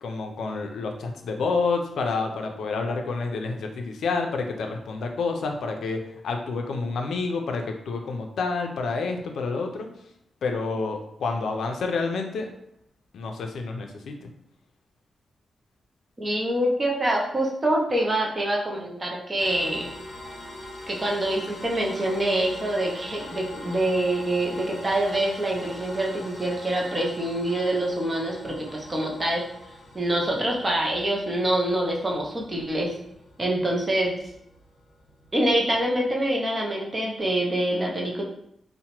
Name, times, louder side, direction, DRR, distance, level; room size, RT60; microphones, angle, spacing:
voice 1, 0.0-9.9 10.4-12.5 13.1-14.3, left 4 dB, 90° left, 4 dB, 0.4 m, -29 dB
voice 2, 16.2-19.9 20.9-29.5 29.9-32.9 33.4-34.3 35.3-38.2, right 1 dB, 20° right, -1 dB, 0.5 m, -25 dB
sound 1, 19.4-36.5, left 2 dB, 45° left, 0.7 m, -44 dB
2.8 x 2.1 x 2.8 m, 0.74 s
wide cardioid pair, 160°, 0 cm